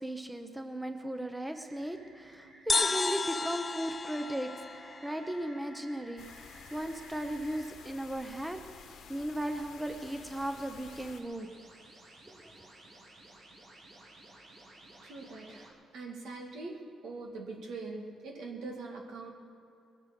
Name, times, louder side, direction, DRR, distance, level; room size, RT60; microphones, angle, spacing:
voice 1, 0.0-6.2 6.7-11.5 12.3-12.7, right 1 dB, 5° right, 6 dB, 1.0 m, -37 dB
sound 1, 1.5-7.7 9.3-15.7, right 1 dB, 60° right, 2.9 m, -55 dB
sound 2, 2.7-6.2, left 4 dB, 30° left, 0.4 m, -33 dB
sound 3, 6.2-11.2, left 6 dB, 75° left, 1.4 m, -52 dB
voice 2, 15.0-19.3, right 3 dB, 80° right, 0 dB, 2.3 m, -43 dB
21.5 x 8.1 x 6.1 m, 2.6 s
cardioid pair, 90°, 0 cm